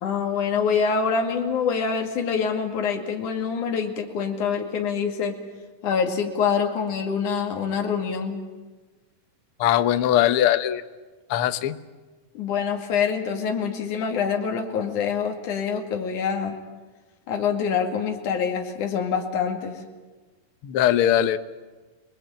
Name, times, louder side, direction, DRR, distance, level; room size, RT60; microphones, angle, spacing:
voice 1, 0.0-5.4 5.8-8.4 12.4-16.6 17.3-19.8, left 6 dB, 65° left, 3 dB, 3.6 m, -25 dB
voice 2, 9.6-10.8 11.3-11.8 20.6-21.4, left 11 dB, 90° left, 10 dB, 1.2 m, -20 dB
28.0 x 20.5 x 9.0 m, 1.3 s
omnidirectional pair, 3.9 m